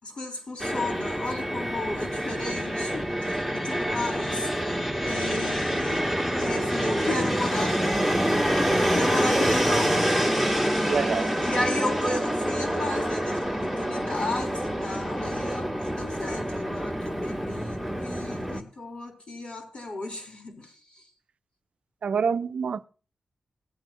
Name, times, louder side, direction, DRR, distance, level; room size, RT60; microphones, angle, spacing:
voice 1, 0.0-6.1 6.4-8.1 8.5-10.2 11.4-21.0, left 2 dB, 55° left, 4.2 m, -34 dB
Fixed-wing aircraft airplane, 0.6-18.6, equal, 10° left, 1.9 m, -26 dB
voice 2, 10.9-11.4 22.0-22.8, right 6 dB, 70° right, 0.5 m, -27 dB
18.0 x 9.1 x 2.9 m
cardioid pair, 75°, 2 cm